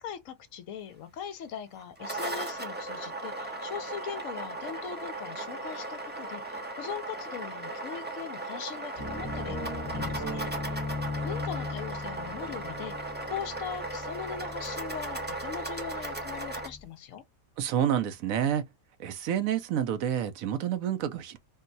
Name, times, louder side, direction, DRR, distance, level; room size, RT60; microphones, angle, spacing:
voice 1, 0.0-10.8 11.2-17.2, left 8 dB, 70° left, 0.9 m, -40 dB
sound 1, 1.8-16.7, right 2 dB, 15° right, 0.4 m, -37 dB
sound 2, 9.0-16.9, left 3 dB, 15° left, 1.0 m, -38 dB
voice 2, 17.6-18.7 19.0-21.4, right 9 dB, 75° right, 1.0 m, -28 dB
3.7 x 2.1 x 2.5 m
omnidirectional pair, 1.5 m